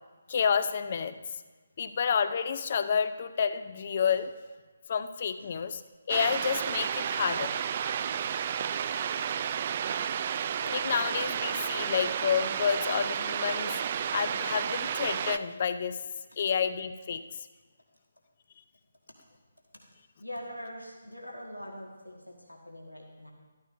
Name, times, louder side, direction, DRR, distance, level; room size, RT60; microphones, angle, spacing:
voice 1, 0.3-1.2 1.8-4.3 4.9-5.8 6.1-7.5 10.6-13.8 14.1-16.0 16.4-17.5, left 7 dB, 40° left, 11 dB, 0.5 m, -29 dB
sound 1, 6.1-15.4, right 8 dB, 35° right, 0.3 m, -32 dB
voice 2, 20.2-23.3, equal, 90° left, 0 dB, 1.8 m, -43 dB
13.5 x 13.0 x 2.7 m, 1.3 s
figure-of-eight pair, 145°, 0 cm